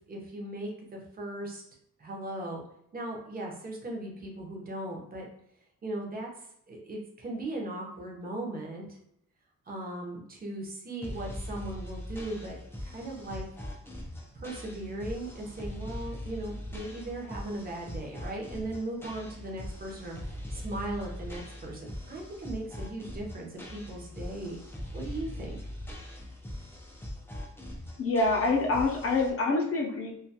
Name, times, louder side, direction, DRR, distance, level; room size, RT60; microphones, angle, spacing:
voice 1, 0.1-1.6 2.0-2.6 2.9-5.3 5.8-6.3 6.7-9.0 9.7-13.5 14.3-24.6 24.9-25.6, right 1 dB, 30° right, -1 dB, 0.6 m, -38 dB
sound 1, 11.0-29.3, left 1 dB, 10° left, 0.3 m, -41 dB
voice 2, 28.0-30.1, left 3 dB, 45° left, 0 dB, 0.6 m, -26 dB
2.4 x 2.3 x 2.7 m, 0.72 s
wide cardioid pair, 155°, 32 cm